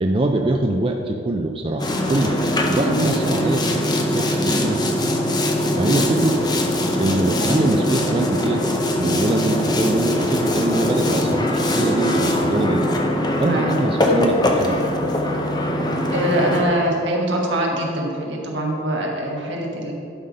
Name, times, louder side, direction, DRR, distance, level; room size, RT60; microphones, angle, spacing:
voice 1, 0.0-5.1 5.8-6.4 7.0-8.6 8.9-13.0 13.4-14.9, right 2 dB, 30° right, 3 dB, 0.3 m, -23 dB
Boat Water vehicle, 1.8-16.6, left 1 dB, 20° left, 0.6 m, -21 dB
voice 2, 2.8-3.4 13.4-13.7 16.1-19.9, right 1 dB, 70° right, -1 dB, 1.4 m, -23 dB
11.0 x 4.1 x 5.3 m, 2.8 s
head